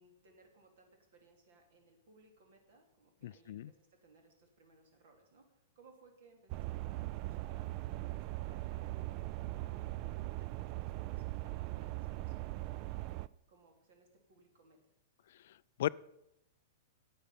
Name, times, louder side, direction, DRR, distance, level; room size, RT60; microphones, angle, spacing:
voice 1, 0.0-7.7 8.1-13.1 13.5-14.8, right 3 dB, 60° right, 4 dB, 3.1 m, -65 dB
voice 2, 3.2-3.7 15.8-15.9, left 13 dB, 60° left, 20 dB, 0.3 m, -35 dB
sound 1, 6.5-13.3, right 18 dB, 45° right, 0.3 m, -40 dB
9.9 x 8.8 x 6.9 m, 0.85 s
hypercardioid pair, 105°, 0 cm